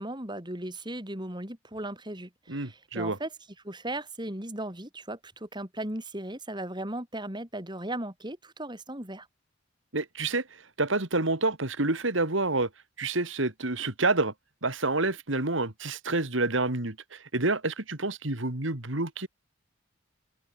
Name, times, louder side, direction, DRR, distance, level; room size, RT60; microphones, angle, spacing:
voice 1, 0.0-3.3 3.6-9.3, right 1 dB, 25° right, 6.2 m, -37 dB
voice 2, 2.5-3.2 9.9-10.4 10.8-12.7 13.0-14.3 14.6-19.3, right 2 dB, 70° right, 2.7 m, -28 dB
open air
head